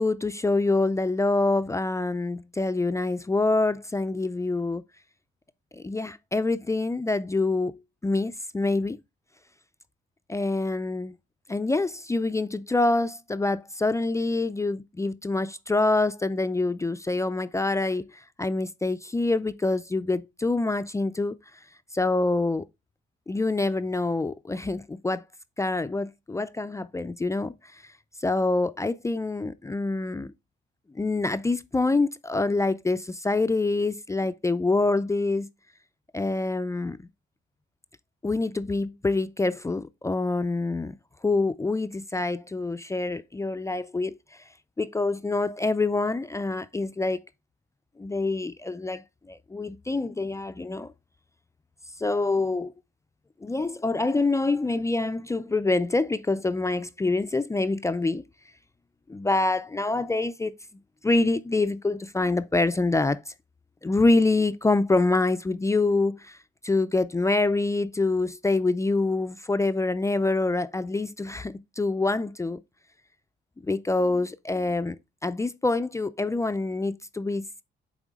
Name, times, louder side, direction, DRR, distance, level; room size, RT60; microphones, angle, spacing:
voice 1, 0.0-4.8 5.7-9.0 10.3-11.2 11.5-21.3 21.9-22.7 23.3-25.2 25.6-27.8 28.2-30.3 30.9-35.5 36.1-37.0 38.2-41.0 41.2-44.2 44.8-47.2 48.0-50.9 52.0-52.7 53.4-58.2 59.1-60.5 61.0-63.2 63.8-66.4 66.6-72.6 73.6-75.0 75.2-77.6, left 3 dB, 15° left, 0.4 m, -26 dB
8.9 x 3.6 x 3.6 m
cardioid pair, 90°, 20 cm